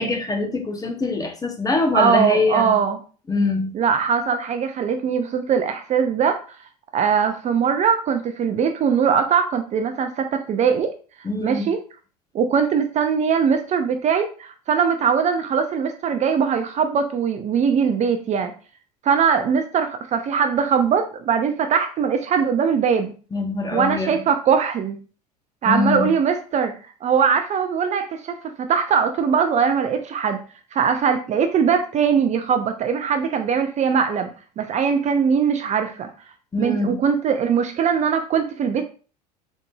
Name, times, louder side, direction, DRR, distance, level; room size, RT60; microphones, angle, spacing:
voice 1, 0.0-2.7 3.3-3.7 11.2-11.6 23.3-24.2 25.6-26.1 36.5-37.0, left 3 dB, 15° left, 4 dB, 0.9 m, -23 dB
voice 2, 1.9-3.0 3.7-6.6 6.9-10.9 11.4-11.8 12.3-18.5 19.0-23.1 23.7-25.0 25.6-26.7 27.0-30.4 30.7-36.1 36.6-38.8, right 6 dB, 35° right, 7 dB, 0.5 m, -21 dB
4.0 x 3.6 x 2.3 m, 0.38 s
hypercardioid pair, 75°, 21 cm